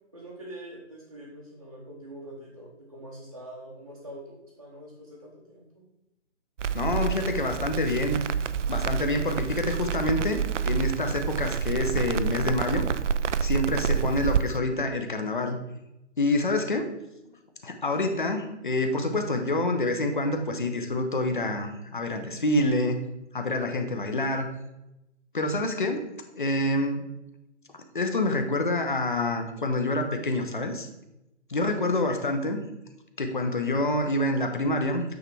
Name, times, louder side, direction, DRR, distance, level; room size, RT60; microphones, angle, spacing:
voice 1, 0.1-5.8 31.8-31.9, right 1 dB, 25° right, -6 dB, 0.8 m, -44 dB
Crackle, 6.6-14.4, right 7 dB, 90° right, 0.5 m, -28 dB
voice 2, 6.7-8.2 8.7-12.8 13.4-15.6 16.2-16.9 17.6-23.0 23.3-24.5 25.3-26.0 26.4-27.0 27.9-30.9 31.5-32.6 33.2-35.0, left 2 dB, 45° left, 6 dB, 0.8 m, -27 dB
8.6 x 3.4 x 4.6 m, 0.90 s
hypercardioid pair, 180°, 35 cm